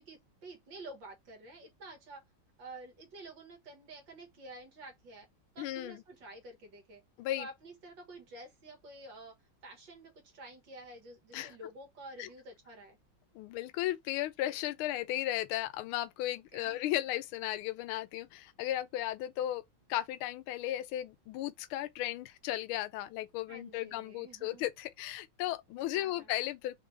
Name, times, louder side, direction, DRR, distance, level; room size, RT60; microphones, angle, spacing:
voice 1, 0.0-2.2 2.6-5.3 5.6-7.0 7.4-9.4 9.6-13.0 16.3-16.8 23.5-24.7 25.9-26.3, right 2 dB, 65° right, 2.2 m, -50 dB
voice 2, 5.6-6.0 7.2-7.5 11.3-11.6 12.2-12.3 13.3-19.6 19.9-26.8, left 14 dB, 90° left, 1.4 m, -35 dB
4.9 x 3.3 x 3.3 m
omnidirectional pair, 2.3 m